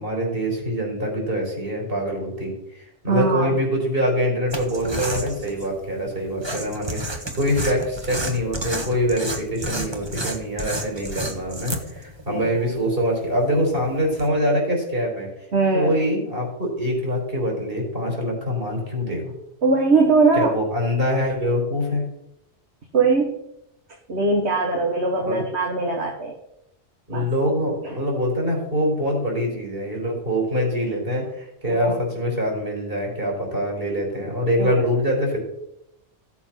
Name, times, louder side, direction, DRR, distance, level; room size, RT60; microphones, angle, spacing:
voice 1, 0.0-15.3 15.7-19.3 20.4-22.0 25.2-25.5 27.1-35.4, equal, 55° right, -1 dB, 4.7 m, -24 dB
voice 2, 3.1-3.5 12.3-12.6 15.5-16.0 19.6-20.5 22.9-23.4 24.1-26.3 27.1-27.2 31.7-32.0 34.6-34.8, right 3 dB, 70° right, 1 dB, 1.9 m, -21 dB
sound 1, 4.5-14.3, right 1 dB, 25° right, 1.4 m, -32 dB
15.5 x 7.1 x 5.9 m, 0.83 s
omnidirectional pair, 1.2 m